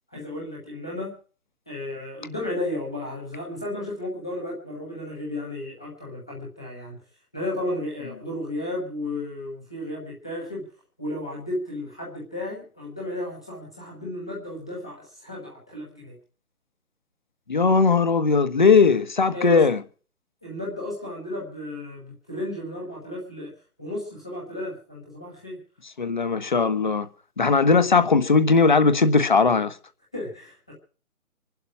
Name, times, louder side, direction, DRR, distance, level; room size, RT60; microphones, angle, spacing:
voice 1, 0.1-1.2 1.7-7.0 7.3-10.6 11.0-16.2 19.3-19.6 20.4-23.5 23.8-25.6 30.1-30.7, left 1 dB, 5° left, 1.1 m, -33 dB
voice 2, 17.5-19.8 26.0-27.1 27.4-29.8, left 4 dB, 30° left, 1.3 m, -19 dB
24.5 x 12.0 x 4.7 m
hypercardioid pair, 180°, 44 cm